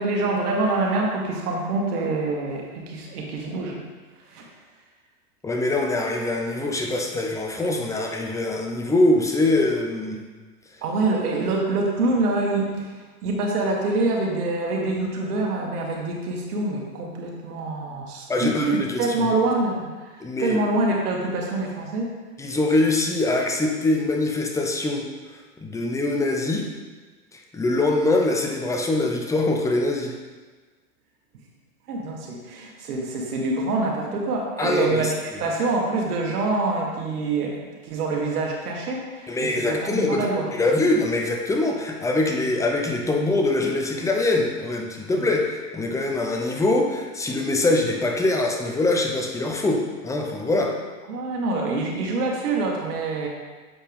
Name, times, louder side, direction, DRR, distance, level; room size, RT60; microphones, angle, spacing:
voice 1, 0.0-3.8 4.3-4.5 10.8-22.1 31.9-40.5 45.2-45.3 51.1-53.3, right 2 dB, 75° right, 0 dB, 1.5 m, -26 dB
voice 2, 5.4-10.2 18.3-19.1 20.2-20.6 22.4-25.1 25.6-26.7 27.3-30.1 34.6-35.1 39.3-40.3 40.5-50.7, left 2 dB, 5° left, 2 dB, 0.6 m, -23 dB
7.4 x 4.4 x 3.5 m, 1.4 s
hypercardioid pair, 105°, 46 cm